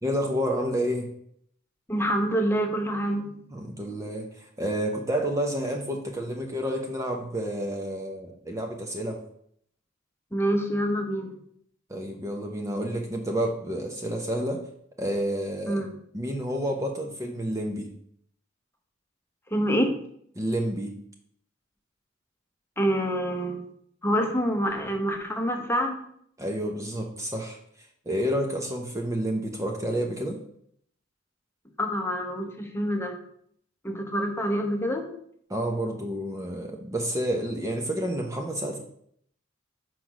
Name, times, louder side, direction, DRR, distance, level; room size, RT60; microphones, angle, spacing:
voice 1, 0.0-1.1 3.5-9.2 11.9-14.7 15.0-15.8 16.1-17.9 20.4-20.9 26.4-27.6 28.1-30.4 35.5-38.8, equal, 15° right, 2 dB, 0.8 m, -29 dB
voice 2, 1.9-3.4 10.3-11.4 15.7-15.9 19.5-20.0 22.8-23.6 24.0-26.0 31.8-33.1 33.8-35.1, equal, 15° left, 3 dB, 1.0 m, -26 dB
6.1 x 4.7 x 6.1 m, 0.67 s
head